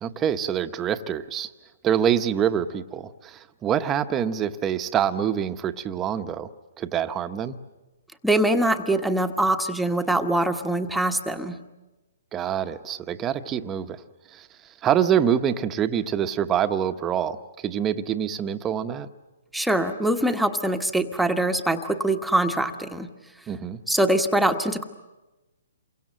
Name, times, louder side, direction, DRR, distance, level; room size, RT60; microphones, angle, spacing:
voice 1, 0.0-1.5 1.8-6.5 6.8-7.6 12.3-14.0 14.3-14.5 14.8-19.1 23.5-23.8, right 9 dB, 20° right, 9 dB, 1.1 m, -25 dB
voice 2, 8.2-11.6 19.5-23.1 23.9-24.8, right 1 dB, ahead, 5 dB, 1.3 m, -23 dB
28.0 x 23.5 x 7.7 m, 1.1 s
hypercardioid pair, 140°, 0 cm